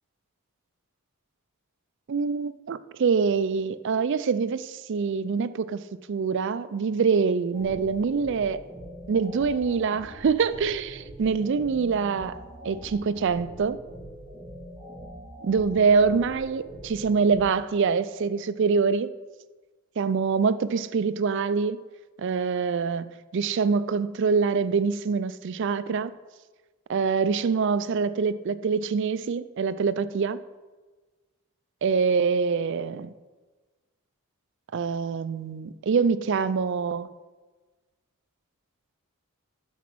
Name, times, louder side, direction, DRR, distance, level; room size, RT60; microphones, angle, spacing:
voice 1, 2.1-5.8 6.1-8.6 9.1-12.4 12.6-13.8 15.4-19.1 20.0-21.8 22.2-26.1 26.9-30.4 31.8-33.1 34.7-37.1, right 5 dB, 55° right, 14 dB, 0.4 m, -25 dB
sound 1, 7.5-17.5, equal, 10° right, 2.8 m, -43 dB
7.2 x 6.0 x 6.1 m, 1.3 s
head